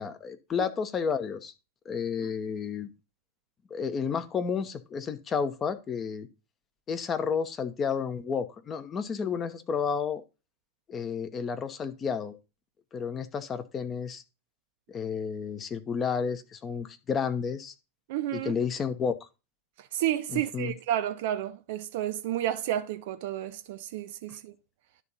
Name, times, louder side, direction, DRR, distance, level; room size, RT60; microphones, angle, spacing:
voice 1, 0.0-1.5 1.8-2.9 3.7-6.3 6.9-10.2 10.9-12.4 12.9-14.2 14.9-17.7 18.3-19.2 20.3-20.7, left 6 dB, 25° left, 1.0 m, -31 dB
voice 2, 18.1-18.6 19.8-24.5, right 12 dB, 50° right, 0.6 m, -31 dB
11.0 x 3.9 x 5.5 m
figure-of-eight pair, 90°, 0 cm